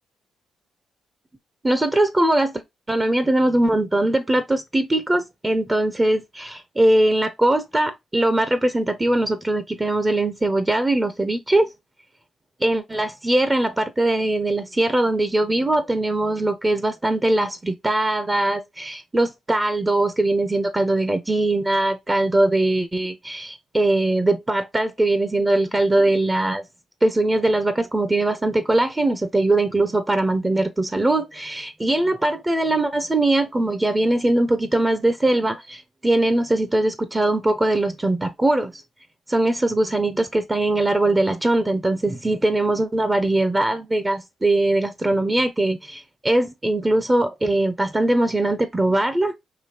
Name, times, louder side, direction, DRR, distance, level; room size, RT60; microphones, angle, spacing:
voice 1, 1.6-2.6 2.9-11.7 12.6-26.6 27.0-38.7 39.3-49.3, right 1 dB, 20° right, 0.7 m, -21 dB
5.0 x 2.8 x 2.7 m
cardioid pair, 85°, 0 cm